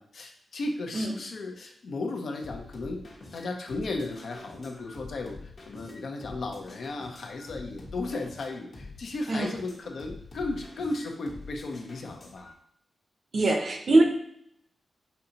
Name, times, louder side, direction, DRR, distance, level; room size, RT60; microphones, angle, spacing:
voice 1, 0.0-3.0 3.3-12.5, left 2 dB, 75° left, 2 dB, 0.7 m, -35 dB
sound 1, 2.4-12.5, left 2 dB, 55° left, 1.0 m, -46 dB
voice 2, 13.3-14.0, right 2 dB, 60° right, 4 dB, 0.8 m, -22 dB
5.5 x 2.7 x 2.8 m, 0.71 s
cardioid pair, 55°, 0 cm